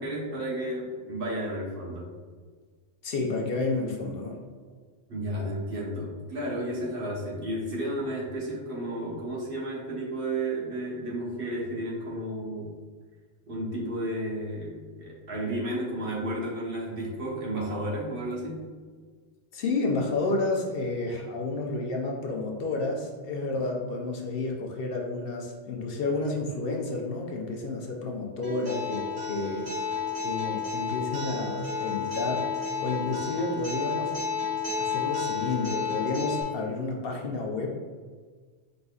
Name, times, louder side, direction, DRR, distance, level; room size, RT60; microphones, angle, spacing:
voice 1, 0.0-2.1 5.1-12.7 13.5-18.6, right 1 dB, 60° right, -4 dB, 1.3 m, -32 dB
voice 2, 3.0-4.4 19.5-29.7 30.2-34.2 34.8-37.9, left 3 dB, 65° left, 0 dB, 0.9 m, -31 dB
Acoustic guitar, 28.4-36.4, left 5 dB, 75° right, 1.9 m, -31 dB
5.2 x 3.9 x 2.3 m, 1.5 s
omnidirectional pair, 1.1 m